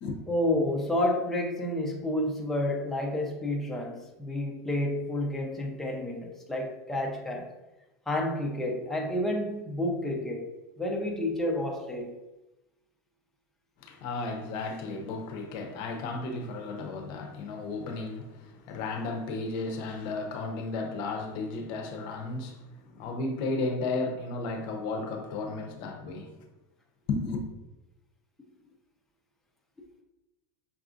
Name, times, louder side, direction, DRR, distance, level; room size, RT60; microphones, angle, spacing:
voice 1, 0.3-7.5 8.1-10.5 10.8-12.2, left 1 dB, 5° left, 0.6 m, -30 dB
voice 2, 13.8-26.4 27.1-27.4, left 3 dB, 55° left, 0.7 m, -34 dB
5.7 x 2.4 x 2.5 m
supercardioid pair, 115°, 10 cm